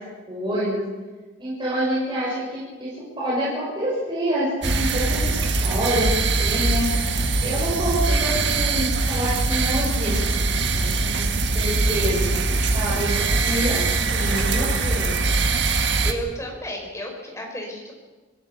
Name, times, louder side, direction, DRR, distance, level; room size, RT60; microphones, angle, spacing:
voice 1, 0.3-0.8 1.4-5.3 5.6-6.9 7.4-10.1 10.4-15.1, equal, 25° right, -8 dB, 6.8 m, -27 dB
sound 1, 4.6-16.1, right 3 dB, 60° right, 1.7 m, -22 dB
voice 2, 16.0-17.9, equal, 15° left, 1 dB, 4.9 m, -32 dB
25.5 x 16.5 x 7.0 m, 1.3 s
head